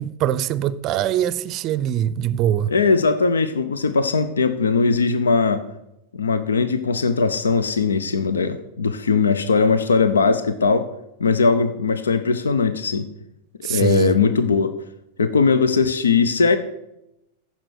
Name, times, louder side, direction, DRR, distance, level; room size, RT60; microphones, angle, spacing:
voice 1, 0.0-2.7 13.6-14.2, right 11 dB, 35° right, 0.6 m, -23 dB
voice 2, 2.7-5.7 6.1-10.9 11.2-13.1 13.6-14.8 15.2-16.6, left 4 dB, 70° left, 0.6 m, -19 dB
14.5 x 5.7 x 6.3 m
figure-of-eight pair, 90°, 0 cm